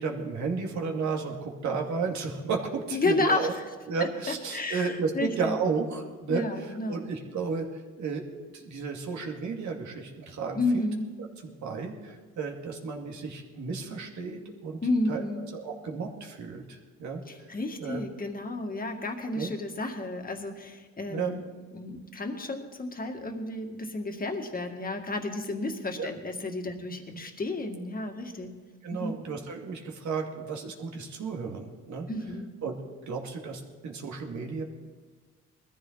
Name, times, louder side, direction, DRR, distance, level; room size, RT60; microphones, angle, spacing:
voice 1, 0.0-3.5 3.9-8.2 8.5-10.8 11.6-14.8 15.1-17.5 17.8-18.0 19.3-19.5 21.1-21.3 26.0-26.1 28.8-32.1 32.6-32.8 33.1-34.6, right 5 dB, 70° right, 2 dB, 2.4 m, -33 dB
voice 2, 2.9-3.7 4.0-5.6 6.3-7.0 10.5-11.1 14.8-15.5 17.3-21.4 21.7-28.5 28.9-29.2 32.1-32.5, left 2 dB, 30° left, 4 dB, 2.0 m, -32 dB
19.5 x 14.0 x 4.0 m, 1.4 s
cardioid pair, 90°, 30 cm